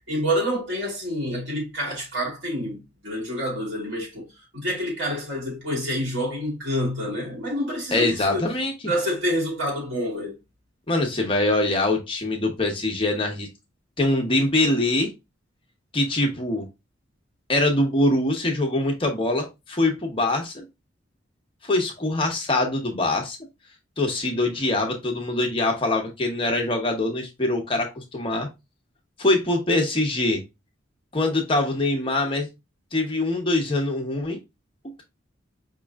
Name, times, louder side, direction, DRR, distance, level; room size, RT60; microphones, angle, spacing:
voice 1, 0.1-4.3 4.5-8.4 8.9-10.4, equal, 75° right, 2.3 m, -27 dB
voice 2, 7.9-8.7 10.9-13.5 14.0-15.1 15.9-16.7 17.5-20.6 21.6-23.4 24.0-28.5 29.2-30.4 31.1-32.5 32.9-34.4, left 2 dB, 25° left, 0.8 m, -23 dB
5.2 x 3.0 x 2.3 m
head